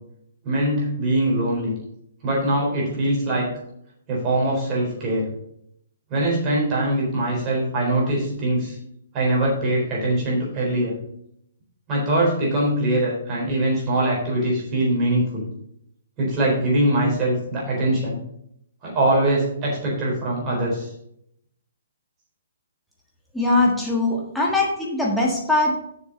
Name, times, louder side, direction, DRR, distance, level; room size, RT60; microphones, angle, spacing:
voice 1, 0.4-1.7 2.2-3.5 4.1-5.3 6.1-8.8 9.1-10.9 11.9-15.5 16.2-18.2 18.8-20.9, right 1 dB, 20° right, -5 dB, 4.0 m, -22 dB
voice 2, 23.3-25.7, left 2 dB, ahead, -4 dB, 1.6 m, -21 dB
7.1 x 6.8 x 5.3 m, 0.74 s
hypercardioid pair, 165°, 0 cm